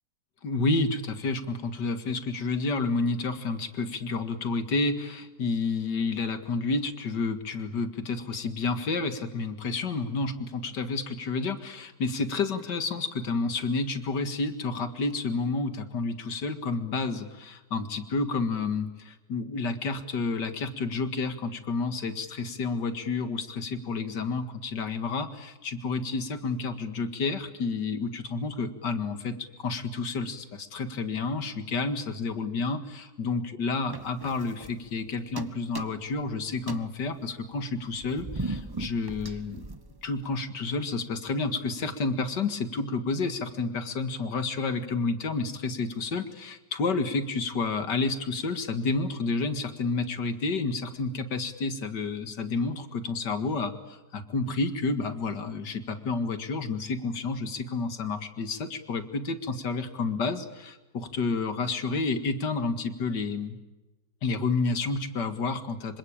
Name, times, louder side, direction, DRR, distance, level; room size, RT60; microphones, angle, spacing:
voice 1, 0.4-39.6 40.0-63.6 64.2-66.0, left 3 dB, 90° left, 10 dB, 2.5 m, -30 dB
sound 1, 33.9-35.0 35.3-36.2 36.6-40.3, right 2 dB, 15° right, 1.0 m, -38 dB
26.5 x 25.0 x 8.9 m, 1.1 s
omnidirectional pair, 1.8 m